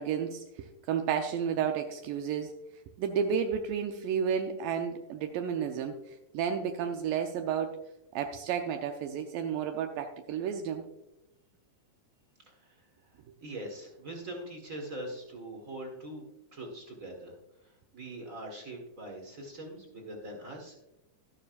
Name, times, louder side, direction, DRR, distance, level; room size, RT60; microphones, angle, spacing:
voice 1, 0.0-2.5 3.0-6.0 6.3-7.8 8.1-10.8, right 7 dB, 80° right, 5 dB, 2.3 m, -32 dB
voice 2, 12.4-12.9 13.4-16.3 16.5-17.3 17.6-20.8, right 1 dB, 45° right, 1 dB, 1.0 m, -42 dB
12.0 x 11.5 x 2.5 m, 0.90 s
omnidirectional pair, 4.0 m